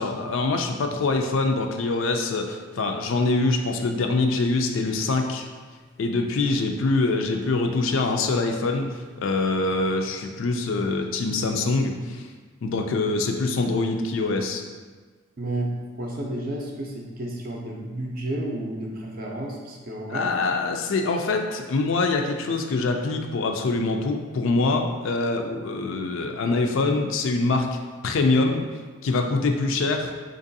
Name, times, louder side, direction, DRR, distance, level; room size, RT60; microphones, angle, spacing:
voice 1, 0.0-5.5 6.0-8.9 9.2-12.3 12.6-14.6 20.1-27.7 28.0-28.6 29.0-30.1, left 3 dB, 65° left, 4 dB, 0.4 m, -24 dB
voice 2, 15.4-20.3, right 1 dB, 45° right, -1 dB, 0.5 m, -31 dB
4.5 x 2.5 x 2.6 m, 1.4 s
head